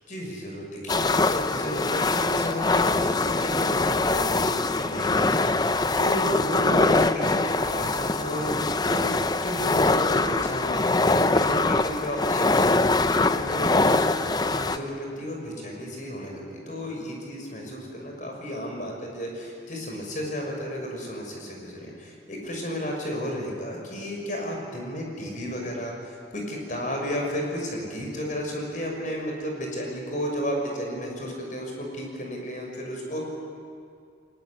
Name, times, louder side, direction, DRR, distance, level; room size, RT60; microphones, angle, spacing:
voice 1, 0.1-33.3, equal, 45° left, 0 dB, 6.3 m, -33 dB
sound 1, 0.9-14.8, left 3 dB, 25° left, 0.6 m, -23 dB
22.0 x 20.5 x 9.8 m, 2.3 s
head